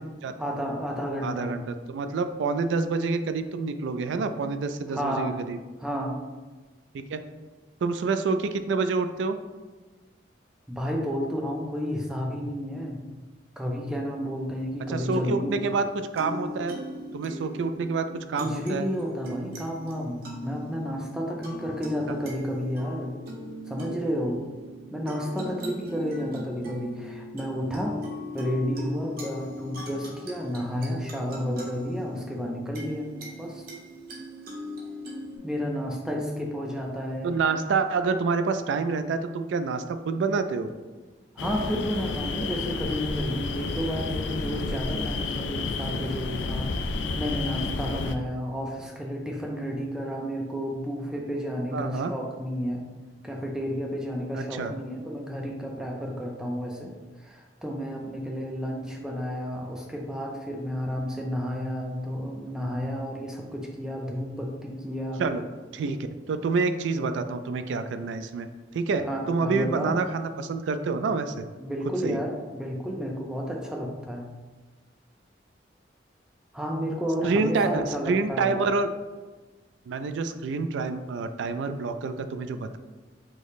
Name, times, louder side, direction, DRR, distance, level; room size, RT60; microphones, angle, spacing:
voice 1, 0.4-1.5 4.9-5.3 5.8-6.2 10.7-13.0 13.6-15.7 18.3-23.1 23.7-24.4 24.9-28.0 28.3-33.1 33.4-33.6 35.4-37.3 41.4-52.8 53.2-56.9 57.2-65.2 69.0-69.9 71.6-74.3 76.5-78.5, equal, 5° right, -1 dB, 0.4 m, -31 dB
voice 2, 1.2-5.6 6.9-7.2 7.8-9.4 14.9-15.9 16.1-16.8 17.1-18.9 37.2-40.7 51.7-52.1 54.3-54.7 65.2-65.4 65.7-66.0 66.3-68.5 68.7-71.4 72.0-72.2 77.2-78.9 79.9-82.8, right 4 dB, 85° right, 10 dB, 0.3 m, -27 dB
sound 1, 15.6-35.4, left 1 dB, 55° right, 0.8 m, -39 dB
sound 2, 41.4-48.2, left 3 dB, 75° left, 0.3 m, -31 dB
5.0 x 2.0 x 4.0 m, 1.3 s
head